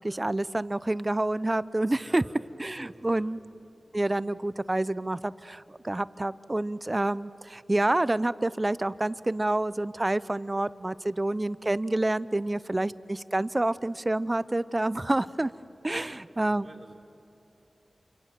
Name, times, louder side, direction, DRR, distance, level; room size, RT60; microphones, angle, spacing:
voice 1, 0.0-2.2 2.6-3.4 3.9-15.5 15.8-16.7, right 2 dB, 30° right, 17 dB, 0.6 m, -28 dB
voice 2, 2.0-2.4 2.7-3.5 15.9-16.9, right 2 dB, 50° right, -2 dB, 2.4 m, -50 dB
28.5 x 25.0 x 7.7 m, 2.9 s
cardioid pair, 50°, 0 cm